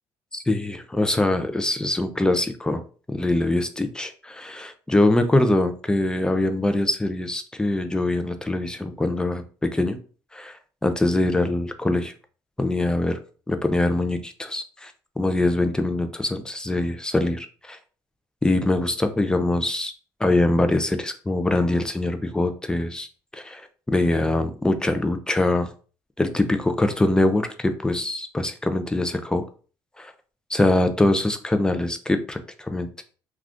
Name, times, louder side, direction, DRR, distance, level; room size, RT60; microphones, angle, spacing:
voice 1, 0.3-2.8 3.1-10.0 10.3-10.6 10.8-12.1 12.6-13.2 13.5-17.8 18.4-19.9 20.2-23.1 23.3-25.7 26.2-29.5 30.0-30.1 30.5-33.0, left 2 dB, 10° left, 8 dB, 0.5 m, -23 dB
2.5 x 2.4 x 3.4 m, 0.38 s
supercardioid pair, 90°, 9 cm